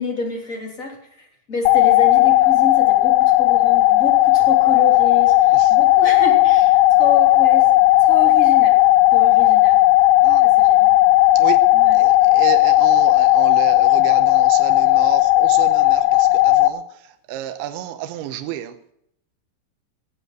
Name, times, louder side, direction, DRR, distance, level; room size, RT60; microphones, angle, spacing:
voice 1, 0.0-8.8 9.1-9.8 10.4-11.0 11.7-12.0, left 3 dB, 20° left, 2.8 m, -29 dB
sound 1, 1.7-16.7, left 17 dB, 80° left, 2.9 m, -14 dB
voice 2, 12.3-16.0 16.4-16.8 17.3-18.7, right 12 dB, 80° right, 3.0 m, -30 dB
18.5 x 8.1 x 7.9 m
omnidirectional pair, 5.7 m